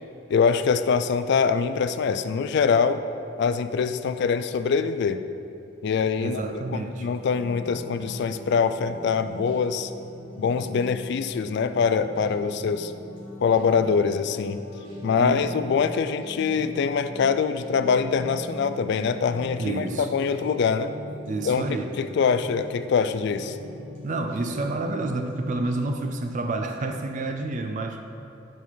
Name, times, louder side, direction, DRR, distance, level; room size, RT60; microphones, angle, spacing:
voice 1, 0.3-3.0 3.4-5.2 5.8-6.4 6.7-9.9 10.4-12.9 13.4-14.6 15.0-20.9 21.5-21.6 22.0-23.6, left 6 dB, 60° left, 11 dB, 0.3 m, -24 dB
voice 2, 6.2-7.1 15.2-15.4 19.6-20.1 21.2-22.0 24.0-28.0, right 2 dB, 40° right, 5 dB, 0.4 m, -29 dB
sound 1, 7.0-25.9, left 1 dB, 85° right, 1.8 m, -40 dB
9.2 x 4.2 x 4.4 m, 2.7 s
head